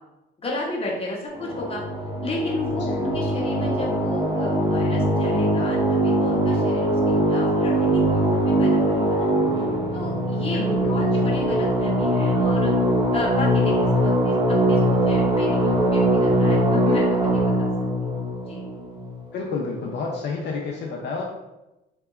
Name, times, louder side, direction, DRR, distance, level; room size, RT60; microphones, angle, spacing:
voice 1, 0.4-1.8 2.2-9.3 9.9-10.6 10.9-12.7 13.1-17.7 18.0-18.2 18.5-18.6, left 2 dB, 30° left, -3 dB, 0.7 m, -33 dB
sound 1, 1.3-19.5, right 1 dB, 20° right, 0.6 m, -22 dB
voice 2, 2.7-3.0 10.5-11.1 19.3-21.2, left 4 dB, 60° left, -2 dB, 0.4 m, -30 dB
2.8 x 2.2 x 2.3 m, 0.99 s
cardioid pair, 90°, 20 cm